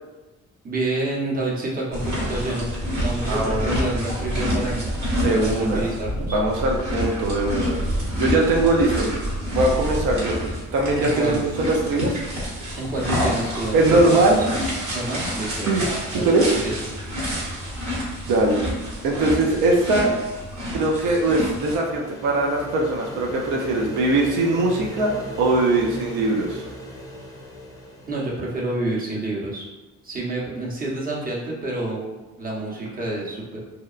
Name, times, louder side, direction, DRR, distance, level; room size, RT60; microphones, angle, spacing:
voice 1, 0.6-2.7 3.0-4.9 5.3-6.4 11.0-11.4 12.8-14.2 14.5-14.6 14.9-15.8 16.1-16.3 16.6-16.7 28.1-29.7 30.0-33.6, right 2 dB, 30° right, -3 dB, 0.7 m, -28 dB
sound 1, 1.9-21.8, equal, 65° right, 1.1 m, -28 dB
voice 2, 3.3-3.7 5.2-5.8 6.3-7.8 8.1-9.1 9.5-12.2 13.7-14.4 15.7-15.8 16.1-16.5 18.3-18.6 19.0-20.1 20.7-26.6, right 2 dB, 85° right, 0 dB, 0.5 m, -21 dB
sound 2, 20.5-29.0, equal, 10° left, 0.5 m, -38 dB
2.8 x 2.1 x 2.4 m, 1.2 s
cardioid pair, 90°, 30 cm